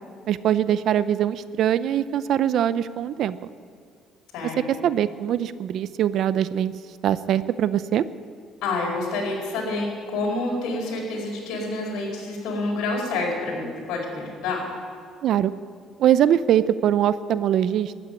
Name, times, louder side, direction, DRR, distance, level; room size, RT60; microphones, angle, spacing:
voice 1, 0.3-3.5 4.8-6.7 7.0-8.1 15.2-15.5 16.0-17.9, right 10 dB, 65° right, 16 dB, 0.5 m, -22 dB
voice 2, 8.6-9.9 10.1-14.7, left 2 dB, 80° left, -1 dB, 4.7 m, -28 dB
13.5 x 9.1 x 9.8 m, 2.2 s
cardioid pair, 105°, 0 cm